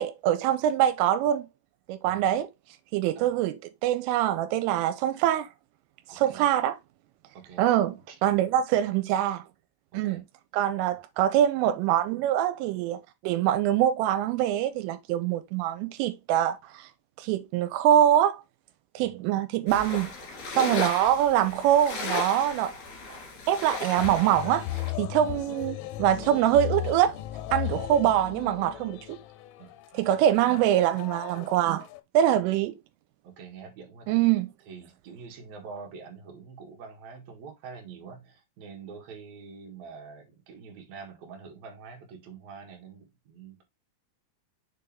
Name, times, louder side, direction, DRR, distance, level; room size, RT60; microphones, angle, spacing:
voice 1, 0.0-1.5 1.9-2.5 2.9-5.5 6.1-6.8 7.6-9.4 9.9-10.2 10.5-16.9 17.2-18.4 19.0-20.1 20.5-22.7 23.5-24.7 25.0-27.2 27.5-29.2 29.9-31.9 32.1-32.8 34.1-34.5, right 11 dB, 85° right, 3.1 m, -24 dB
voice 2, 2.0-2.4 3.2-3.4 6.1-6.5 7.3-7.7 7.9-8.2 8.5-8.6 9.9-10.2 19.0-19.3 25.2-25.4 28.0-28.2 29.6-30.6 32.5-32.6 33.2-34.2 34.7-43.6, right 5 dB, 50° right, 2.3 m, -46 dB
sound 1, 19.7-24.9, left 2 dB, 45° left, 3.5 m, -35 dB
sound 2, 24.0-32.0, left 15 dB, 85° left, 3.1 m, -36 dB
6.7 x 4.6 x 3.4 m
omnidirectional pair, 5.7 m